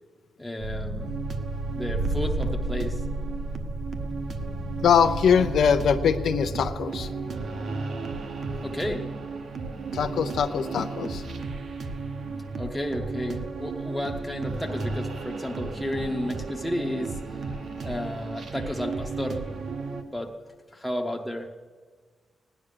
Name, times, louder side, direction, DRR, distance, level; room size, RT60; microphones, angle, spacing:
voice 1, 0.4-1.1 1.7-3.0 8.6-9.1 12.2-17.2 17.8-19.6 20.1-20.3 20.7-21.5, left 1 dB, 5° left, 0 dB, 0.8 m, -32 dB
sound 1, 0.6-6.7, right 2 dB, 80° right, 3.2 m, -32 dB
sound 2, 1.0-20.0, right 4 dB, 55° right, 1.0 m, -34 dB
voice 2, 4.8-7.1 9.9-11.3 17.5-17.9, left 7 dB, 75° left, 7 dB, 0.6 m, -23 dB
17.0 x 10.0 x 6.7 m, 1.5 s
wide cardioid pair, 150°, 0 cm